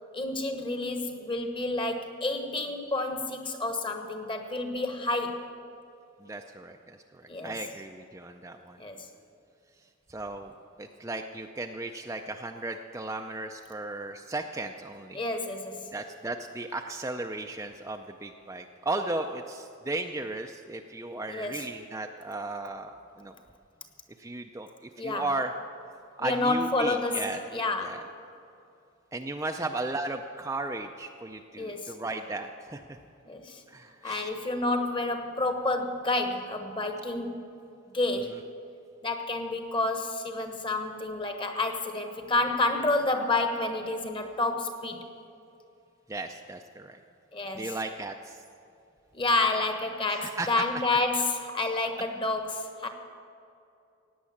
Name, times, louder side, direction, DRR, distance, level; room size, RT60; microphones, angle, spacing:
voice 1, 0.1-5.5 7.3-7.6 8.8-9.1 15.1-15.9 21.3-21.7 25.0-25.3 26.2-28.1 31.5-31.9 33.3-33.6 34.0-37.5 37.9-38.4 39.0-45.0 47.3-47.8 49.1-52.9, left 2 dB, 25° left, 6 dB, 1.2 m, -29 dB
voice 2, 6.2-8.8 10.1-10.5 10.8-15.2 15.9-22.9 23.2-23.3 24.2-24.7 25.0-25.5 26.2-27.4 27.8-28.0 29.1-32.8 33.7-34.3 38.1-38.4 46.1-47.0 47.5-48.4 50.1-50.7, right 2 dB, 15° right, 4 dB, 0.4 m, -35 dB
16.5 x 9.4 x 7.2 m, 2.6 s
head